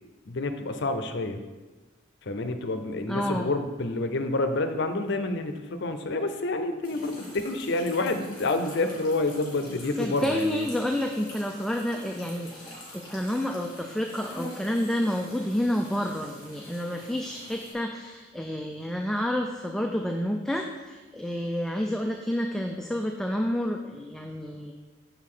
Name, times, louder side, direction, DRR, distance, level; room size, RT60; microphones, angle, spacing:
voice 1, 0.3-1.4 2.2-10.7, left 2 dB, 60° left, 8 dB, 0.6 m, -28 dB
voice 2, 3.1-3.5 10.0-24.7, left 1 dB, 5° left, 2 dB, 0.4 m, -29 dB
sound 1, 6.8-17.7, left 1 dB, 25° left, 2.2 m, -45 dB
7.0 x 6.3 x 3.8 m, 1.2 s
head